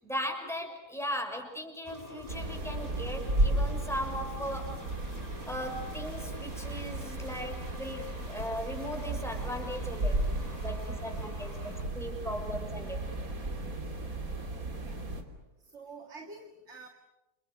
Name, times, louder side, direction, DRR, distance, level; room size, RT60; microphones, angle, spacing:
voice 1, 0.0-4.8 5.5-10.2 10.5-13.0, equal, ahead, 2 dB, 6.2 m, -38 dB
sound 1, 1.8-11.8, equal, 25° right, 4.9 m, -49 dB
sound 2, 2.3-15.2, right 1 dB, 65° right, 3.6 m, -34 dB
sound 3, 7.7-7.8 8.4-8.5 9.1-9.2 9.7-9.9 10.4-10.5 11.1-11.2 11.8-11.9 12.4-12.6, left 2 dB, 85° left, 3.0 m, -44 dB
voice 2, 15.6-16.9, right 3 dB, 50° right, 4 dB, 2.5 m, -48 dB
30.0 x 29.0 x 6.7 m, 0.96 s
omnidirectional pair, 1.6 m